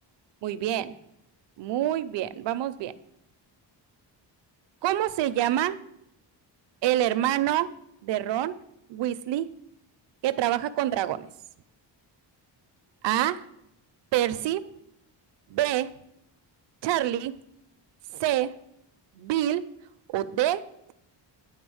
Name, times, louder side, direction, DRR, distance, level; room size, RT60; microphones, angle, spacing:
voice 1, 0.4-1.0 1.6-2.9 4.8-5.8 6.8-7.7 8.0-8.5 8.9-9.5 10.2-11.3 13.0-13.4 14.1-14.6 15.5-15.9 16.8-17.3 18.2-18.5 19.1-19.6 20.1-20.6, right 13 dB, 70° right, 13 dB, 0.6 m, -26 dB
9.5 x 3.7 x 6.2 m, 0.80 s
wide cardioid pair, 170°, 44 cm